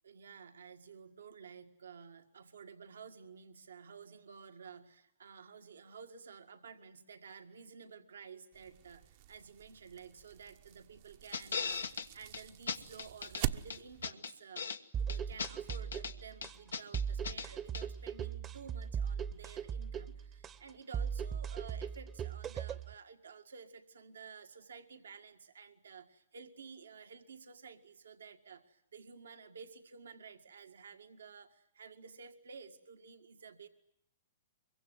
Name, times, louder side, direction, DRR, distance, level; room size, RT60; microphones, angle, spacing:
voice 1, 0.0-33.7, right 5 dB, 80° right, 6 dB, 1.8 m, -53 dB
sound 1, 8.5-14.1, right 13 dB, 50° right, 1.1 m, -44 dB
sound 2, 11.3-12.1 12.3-12.4 12.7-13.4 13.7-14.8 15.1-16.1 16.4-17.5 17.7-17.8, left 5 dB, 85° left, 1.5 m, -38 dB
sound 3, 14.9-22.9, right 7 dB, 25° right, 1.0 m, -39 dB
24.0 x 23.0 x 9.4 m, 0.73 s
hypercardioid pair, 120°, 0 cm